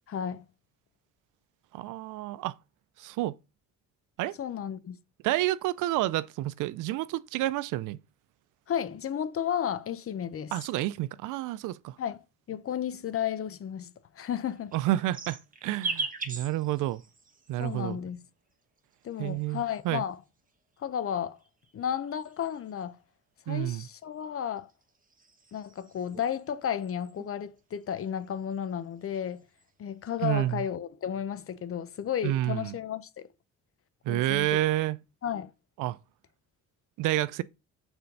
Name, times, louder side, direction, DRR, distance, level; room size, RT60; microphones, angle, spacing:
voice 1, 0.1-0.4 4.4-5.0 8.7-10.5 12.0-14.7 17.6-18.3 19.0-20.2 20.8-21.4 21.7-23.0 23.5-24.7 25.5-29.4 29.8-33.3 34.1-34.6 35.2-35.5, left 9 dB, 50° left, 0.8 m, -33 dB
voice 2, 1.7-2.6 3.0-3.4 4.2-4.3 5.2-8.0 10.5-11.9 14.7-17.0 17.5-18.0 19.2-20.0 23.5-23.9 30.2-30.6 32.2-32.7 34.1-35.0 35.8-36.0 37.0-37.4, right 15 dB, 90° right, 0.5 m, -29 dB
sound 1, 14.4-17.8 18.8-20.1 21.0-22.8 24.2-26.4 26.8-27.3 27.6-28.7 29.0-29.6, right 4 dB, 25° right, 1.5 m, -41 dB
6.9 x 4.4 x 5.2 m
cardioid pair, 90°, 30 cm